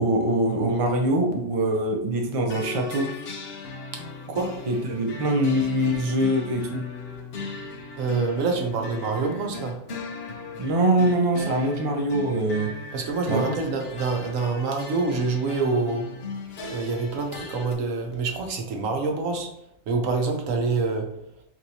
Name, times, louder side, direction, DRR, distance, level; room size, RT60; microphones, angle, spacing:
voice 1, 0.0-3.1 4.7-6.8 10.6-12.7 13.3-13.7, right 1 dB, 35° right, 2 dB, 0.6 m, -23 dB
sound 1, 2.5-17.7, left 3 dB, 55° left, 1.0 m, -37 dB
voice 2, 4.3-4.6 8.0-9.8 12.9-16.1 16.6-19.5 19.9-21.1, right 4 dB, 90° right, 3 dB, 1.2 m, -26 dB
4.5 x 3.8 x 2.7 m, 0.76 s
omnidirectional pair, 1.3 m